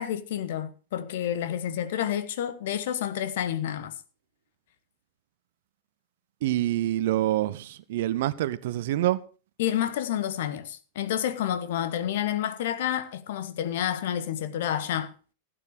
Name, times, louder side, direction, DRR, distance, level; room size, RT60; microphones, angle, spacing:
voice 1, 0.0-3.9 9.6-15.1, left 10 dB, 55° left, 1.3 m, -29 dB
voice 2, 6.4-9.2, right 14 dB, 55° right, 0.8 m, -26 dB
16.5 x 9.0 x 4.8 m
figure-of-eight pair, 90°, 0 cm